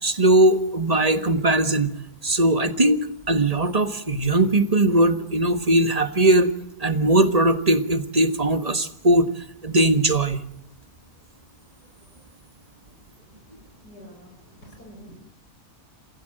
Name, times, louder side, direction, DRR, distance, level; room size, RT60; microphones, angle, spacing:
voice 1, 0.0-1.9 2.2-6.5 6.8-9.3 9.6-10.4, right 1 dB, 25° right, 11 dB, 1.5 m, -20 dB
voice 2, 13.5-15.2, equal, 85° left, 2 dB, 6.1 m, -47 dB
28.0 x 16.0 x 9.0 m, 0.72 s
omnidirectional pair, 1.7 m